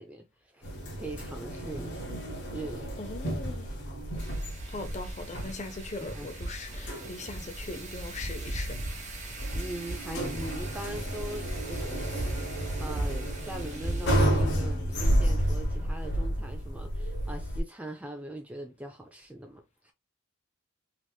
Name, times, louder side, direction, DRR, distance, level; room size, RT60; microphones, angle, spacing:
voice 1, 0.0-2.1 2.5-2.9 3.8-4.1 6.0-6.9 7.2-7.5 8.9-9.1 9.5-12.1 12.8-19.9, right 1 dB, 5° right, 0.3 m, -42 dB
sound 1, 0.6-17.6, equal, 55° left, 1.0 m, -31 dB
voice 2, 3.0-3.7 4.7-8.8, left 2 dB, 35° left, 0.6 m, -40 dB
Wind, 4.2-14.2, right 1 dB, 35° right, 0.9 m, -38 dB
3.3 x 2.9 x 2.3 m
head